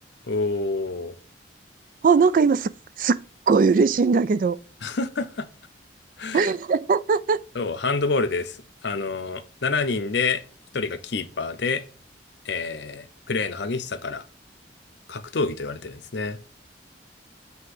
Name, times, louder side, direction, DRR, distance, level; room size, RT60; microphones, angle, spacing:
voice 1, 0.3-1.1 4.8-5.5 6.2-6.5 7.5-8.6 8.8-10.4 10.7-11.8 12.4-14.2 15.1-16.4, left 4 dB, 70° left, 0.7 m, -27 dB
voice 2, 2.0-2.7 3.0-3.2 3.5-4.6 6.3-7.4, right 5 dB, 50° right, 0.3 m, -19 dB
7.9 x 2.8 x 4.8 m
head